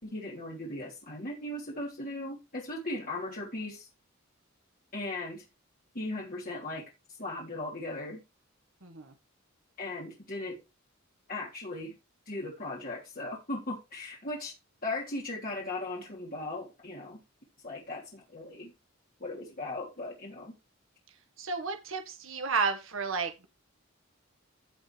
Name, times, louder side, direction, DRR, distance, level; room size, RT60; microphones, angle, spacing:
voice 1, 0.0-3.9 4.9-5.4 5.9-6.8 7.2-8.2 9.8-10.6 11.3-11.9 12.3-14.5 14.8-17.2 17.6-18.7 19.2-20.5, left 2 dB, 45° left, 3.4 m, -37 dB
voice 2, 8.8-9.1 21.4-23.5, right 4 dB, 75° right, 1.7 m, -32 dB
16.0 x 5.4 x 3.4 m
head